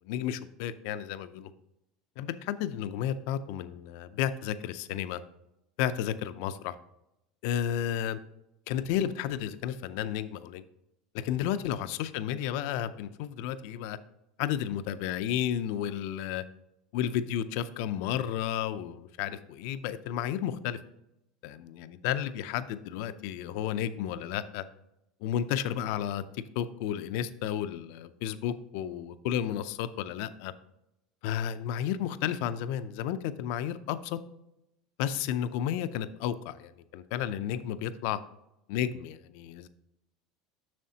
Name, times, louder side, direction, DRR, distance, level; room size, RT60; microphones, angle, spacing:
voice 1, 0.1-1.5 2.2-5.2 5.8-6.7 7.4-8.2 8.7-10.6 11.1-14.0 14.4-16.4 16.9-20.8 21.4-24.6 25.2-26.2 26.6-30.5 31.2-34.2 35.0-38.2 38.7-39.7, left 10 dB, 65° left, 12 dB, 0.4 m, -32 dB
7.5 x 6.3 x 2.8 m, 0.86 s
cardioid pair, 165°, 0 cm